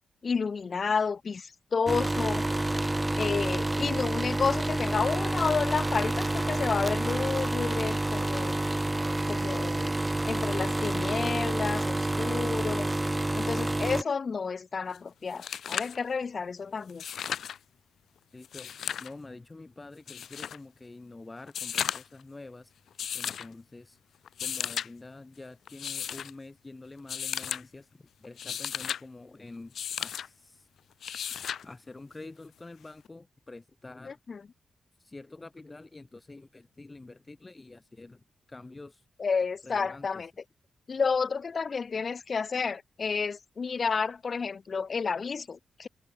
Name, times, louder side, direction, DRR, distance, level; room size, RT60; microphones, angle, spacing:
voice 1, 0.2-2.4 3.2-8.6 9.3-9.8 10.3-12.9 13.3-17.0 34.1-34.4 39.2-40.3 40.9-45.9, left 5 dB, 55° left, 2.0 m, -31 dB
sound 1, 1.9-14.0, right 2 dB, 20° right, 0.5 m, -29 dB
voice 2, 9.5-10.1 18.3-22.7 23.1-24.0 24.4-30.7 31.6-34.2 35.0-39.0 39.6-40.2, left 2 dB, 30° left, 7.4 m, -47 dB
sound 2, 14.9-15.0 15.3-16.0 16.9-17.6 18.4-19.1 20.1-20.6 21.5-22.2 23.0-23.5 24.3-24.9 25.7-26.3 27.1-27.6 28.2-29.0 29.7-30.3 31.0-31.6 33.0-33.1, left 8 dB, 75° left, 2.0 m, -34 dB
supercardioid pair, 50°, 0 cm